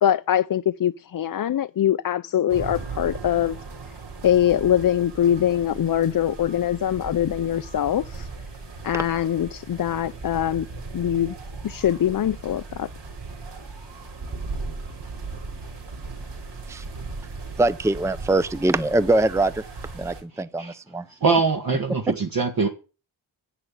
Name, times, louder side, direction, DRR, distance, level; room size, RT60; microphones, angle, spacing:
voice 1, 0.0-3.6 4.2-8.3 8.8-10.7 10.9-11.3 11.6-12.9, left 10 dB, 50° left, 0.6 m, -23 dB
sound 1, 2.5-20.2, right 3 dB, 70° right, 4.6 m, -37 dB
voice 2, 17.6-19.7 19.9-21.1 22.1-22.2, right 2 dB, 5° right, 0.6 m, -23 dB
voice 3, 21.1-22.7, right 4 dB, 55° right, 1.7 m, -23 dB
11.0 x 8.4 x 8.9 m
wide cardioid pair, 130°, 43 cm